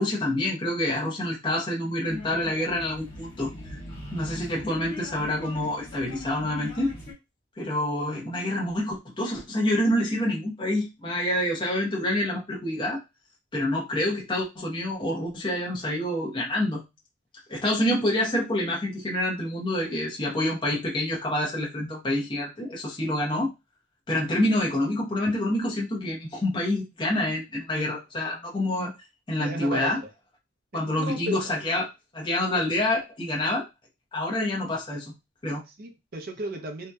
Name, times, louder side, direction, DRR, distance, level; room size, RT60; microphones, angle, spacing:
voice 1, 0.0-3.8 4.1-6.9 7.6-13.0 13.5-16.8 17.5-23.5 24.1-28.9 29.3-30.0 30.7-31.9 32.1-33.6 34.1-35.1 35.4-35.6, left 1 dB, 25° left, 0.7 m, -27 dB
sound 1, 2.1-7.1, left 2 dB, 50° left, 1.3 m, -40 dB
voice 2, 29.4-29.9 30.7-31.4 32.5-32.6 35.7-36.9, right 2 dB, 45° right, 0.5 m, -34 dB
2.7 x 2.1 x 2.2 m
head